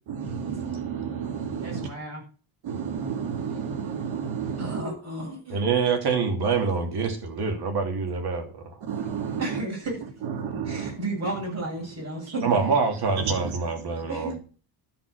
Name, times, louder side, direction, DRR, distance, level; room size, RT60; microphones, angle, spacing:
voice 1, 0.1-1.9 2.6-4.8 8.8-9.6 10.3-11.0 13.2-13.5, right 6 dB, 80° right, 2.6 m, -31 dB
voice 2, 1.6-2.2 4.6-5.6 9.4-10.0 10.6-12.8 14.1-14.4, right 1 dB, 35° right, 7.6 m, -33 dB
voice 3, 5.5-8.8 12.4-14.4, right 5 dB, 55° right, 3.0 m, -25 dB
12.5 x 5.9 x 6.6 m
cardioid pair, 140°, 47 cm